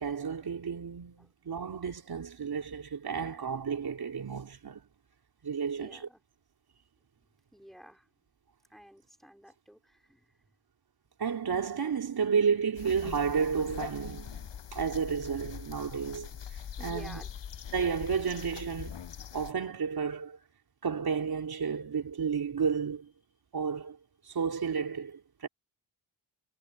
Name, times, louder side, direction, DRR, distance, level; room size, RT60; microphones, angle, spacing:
voice 1, 0.0-4.8 5.4-6.1 11.2-16.3 16.8-17.2 17.7-19.0 19.3-20.4 20.8-23.1 23.5-24.0 24.2-25.5, right 6 dB, 55° right, 3.9 m, -32 dB
voice 2, 5.6-6.2 7.5-8.1 8.7-10.2 16.8-17.3, equal, ahead, 4.5 m, -51 dB
sound 1, 12.8-19.5, left 8 dB, 70° left, 7.5 m, -42 dB
cardioid pair, 90°, 45 cm